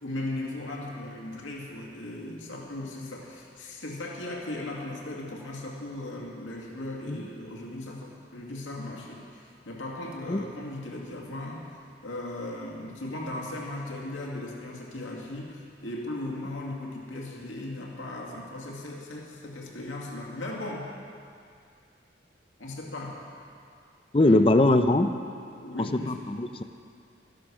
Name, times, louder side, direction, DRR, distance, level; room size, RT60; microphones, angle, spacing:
voice 1, 0.0-11.7 12.0-20.9 22.6-23.2 24.1-24.4 25.6-26.2, left 1 dB, 90° left, -2 dB, 2.3 m, -37 dB
voice 2, 24.1-25.1 25.9-26.6, left 2 dB, 30° left, 9 dB, 0.5 m, -21 dB
13.5 x 11.5 x 6.2 m, 2.4 s
head